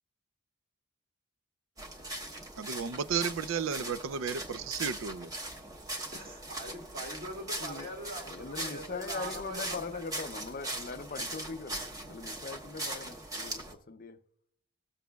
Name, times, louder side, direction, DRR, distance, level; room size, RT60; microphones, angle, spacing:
sound 1, 1.8-13.7, right 1 dB, 15° right, 1.1 m, -40 dB
voice 1, 2.6-5.3, right 6 dB, 70° right, 0.4 m, -33 dB
voice 2, 6.1-10.0, right 1 dB, 45° right, 1.9 m, -43 dB
voice 3, 8.3-14.2, left 4 dB, 40° left, 0.5 m, -41 dB
20.0 x 7.2 x 2.2 m
head